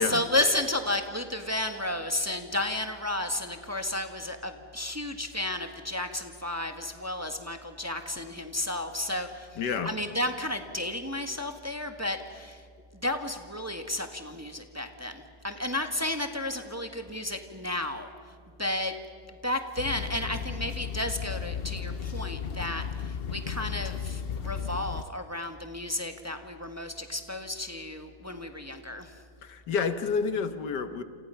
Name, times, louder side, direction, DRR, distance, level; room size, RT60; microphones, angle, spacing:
voice 1, 0.0-12.6 12.9-18.1 18.6-18.9 19.3-29.2, left 1 dB, 10° right, 6 dB, 1.4 m, -32 dB
voice 2, 9.6-9.9 29.4-31.0, left 5 dB, 80° left, 10 dB, 1.9 m, -29 dB
sound 1, 19.8-25.0, left 7 dB, 55° left, 0.7 m, -34 dB
29.0 x 28.5 x 5.8 m, 2.2 s
omnidirectional pair, 1.8 m